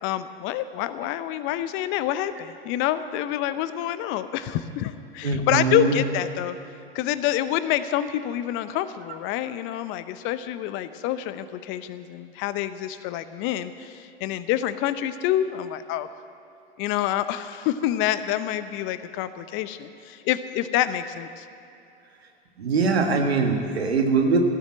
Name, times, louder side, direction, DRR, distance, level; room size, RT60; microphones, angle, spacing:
voice 1, 0.0-6.6 6.9-16.1 16.8-21.4, left 12 dB, 40° left, 13 dB, 0.7 m, -27 dB
voice 2, 5.2-6.0 22.6-24.4, right 4 dB, 80° right, 4 dB, 1.7 m, -22 dB
15.0 x 7.3 x 8.8 m, 2.7 s
hypercardioid pair, 95°, 31 cm